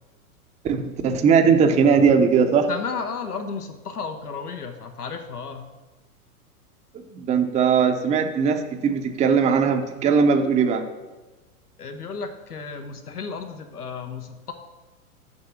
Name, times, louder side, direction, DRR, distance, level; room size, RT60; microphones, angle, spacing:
voice 1, 0.6-2.7 6.9-10.8, right 6 dB, 15° right, 6 dB, 0.6 m, -19 dB
voice 2, 2.7-5.7 11.8-14.5, left 5 dB, 90° left, 7 dB, 1.1 m, -33 dB
6.8 x 6.3 x 7.0 m, 1.2 s
hypercardioid pair, 105°, 45 cm